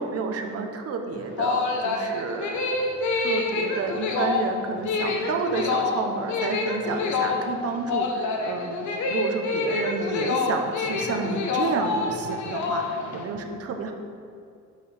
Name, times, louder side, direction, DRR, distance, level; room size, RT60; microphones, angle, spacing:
voice 1, 0.0-2.6 3.1-13.9, right 5 dB, 50° right, 4 dB, 0.8 m, -30 dB
sound 1, 1.1-13.3, left 4 dB, 70° left, 0.9 m, -27 dB
7.6 x 5.4 x 3.3 m, 2.3 s
cardioid pair, 90°, 30 cm